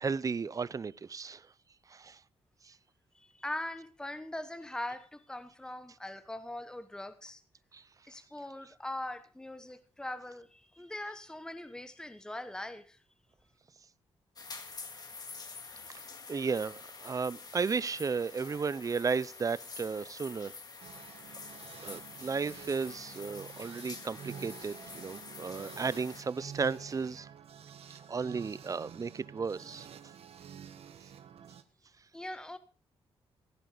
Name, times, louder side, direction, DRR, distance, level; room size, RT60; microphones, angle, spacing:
voice 1, 0.0-1.4 1.9-2.2 2.7-2.8 7.7-7.8 16.3-20.5 21.8-27.3 28.1-29.9, right 5 dB, 35° right, 0.6 m, -34 dB
voice 2, 3.1-7.4 8.1-13.0 32.1-32.6, left 1 dB, 5° left, 1.0 m, -41 dB
sound 1, 14.4-26.2, left 4 dB, 40° left, 2.0 m, -47 dB
sound 2, 20.8-31.6, right 8 dB, 70° right, 1.4 m, -49 dB
16.5 x 9.6 x 5.0 m
cardioid pair, 100°, 10 cm